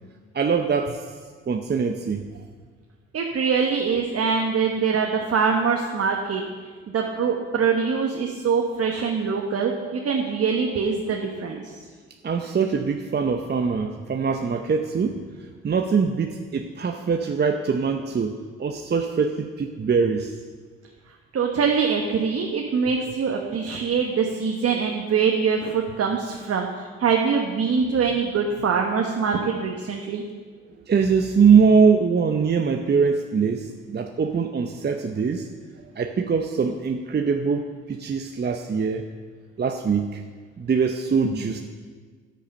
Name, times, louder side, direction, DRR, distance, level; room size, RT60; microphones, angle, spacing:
voice 1, 0.3-1.0 1.5-2.2 12.2-20.4 30.9-35.5 36.0-39.0 39.6-40.2 40.6-41.6, right 5 dB, 35° right, 5 dB, 0.8 m, -22 dB
voice 2, 3.1-6.4 6.9-11.7 21.3-30.2 41.2-41.5, right 5 dB, 55° right, 1 dB, 1.2 m, -24 dB
10.0 x 8.7 x 5.5 m, 1.5 s
supercardioid pair, 50°, 29 cm